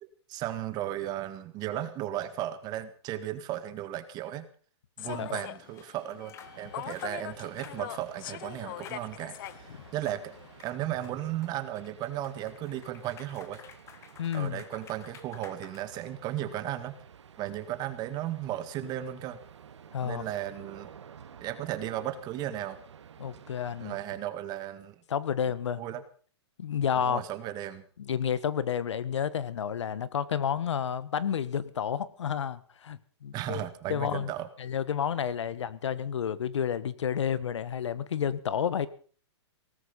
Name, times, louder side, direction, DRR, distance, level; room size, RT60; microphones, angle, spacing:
voice 1, 0.0-4.5 5.0-10.3 10.6-13.6 14.3-17.0 17.4-19.4 20.0-20.9 21.4-22.8 23.8-25.0 25.8-26.0 27.0-27.8 33.3-34.5, right 12 dB, 30° right, 11 dB, 1.8 m, -35 dB
Human voice / Subway metro underground, 5.0-10.7, left 14 dB, 50° left, 0.8 m, -42 dB
voice 2, 5.1-5.4 9.7-9.8 14.2-14.6 19.9-20.2 23.2-23.9 25.1-25.8 26.6-27.2 28.0-34.3 34.6-38.9, left 8 dB, 85° left, 17 dB, 1.4 m, -30 dB
sound 1, 5.8-5.9 6.3-6.6 6.9-7.2 7.6-7.8 8.2-8.4 8.8-9.0 9.4-9.6 10.0-10.2 10.6-16.4, left 7 dB, 20° left, 1.6 m, -52 dB
sound 2, 6.4-24.1, right 8 dB, 85° right, 2.1 m, -52 dB
18.0 x 14.5 x 5.4 m, 0.43 s
hypercardioid pair, 145°, 15 cm